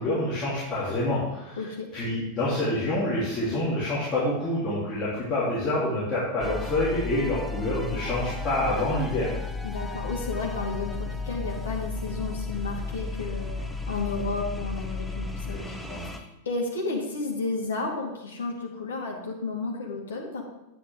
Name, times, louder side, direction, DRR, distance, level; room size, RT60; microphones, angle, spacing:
voice 1, 0.0-1.7 1.9-9.4 15.8-16.0, left 1 dB, 20° left, -10 dB, 3.5 m, -27 dB
voice 2, 1.6-1.9 9.6-13.5 13.9-15.7 16.2-20.4, left 3 dB, 65° left, 0 dB, 2.2 m, -32 dB
sound 1, 6.4-16.2, left 3 dB, 5° left, 0.8 m, -34 dB
9.3 x 9.0 x 3.8 m, 0.96 s
figure-of-eight pair, 90°, 0 cm